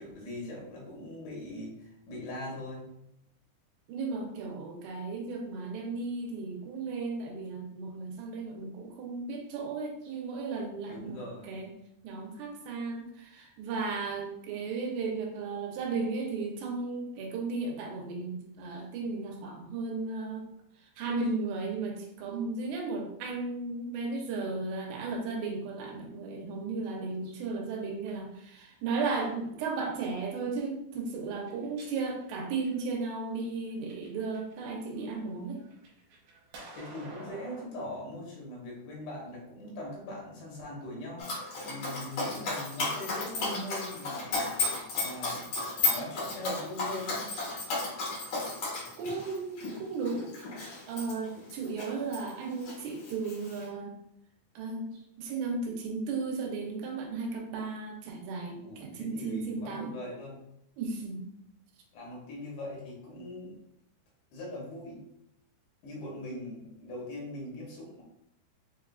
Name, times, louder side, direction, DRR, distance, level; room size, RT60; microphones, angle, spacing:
voice 1, 0.0-2.9 10.9-11.5 36.8-45.4 45.9-47.2 58.6-60.4 61.9-63.6 64.3-65.0 65.8-68.0, left 1 dB, 80° left, -3 dB, 3.3 m, -41 dB
voice 2, 3.9-11.2 11.4-11.7 12.0-20.5 21.0-35.6 49.0-50.3 50.9-54.0 54.6-59.9 60.8-61.2, right 4 dB, 90° right, 1 dB, 2.9 m, -35 dB
sound 1, 31.4-33.1 33.7-34.5 34.9-37.7, right 2 dB, 70° right, 2.1 m, -50 dB
Dog, 41.2-52.3 52.6-53.7, left 3 dB, 60° left, 1.8 m, -34 dB
7.1 x 2.4 x 2.3 m, 0.78 s
omnidirectional pair, 4.7 m